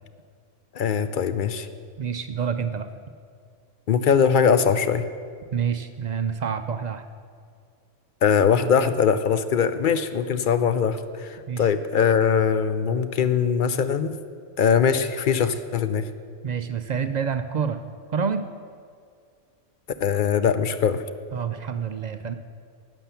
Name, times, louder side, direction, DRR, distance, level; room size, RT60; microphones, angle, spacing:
voice 1, 0.7-1.7 3.9-5.0 8.2-14.2 14.6-16.0 20.0-21.0, left 7 dB, 55° left, 11 dB, 0.6 m, -21 dB
voice 2, 2.0-2.9 5.5-7.0 11.5-11.7 16.4-17.8 18.1-18.4 21.3-22.3, right 6 dB, 60° right, 9 dB, 0.4 m, -27 dB
11.5 x 9.2 x 6.9 m, 2.2 s
omnidirectional pair, 1.3 m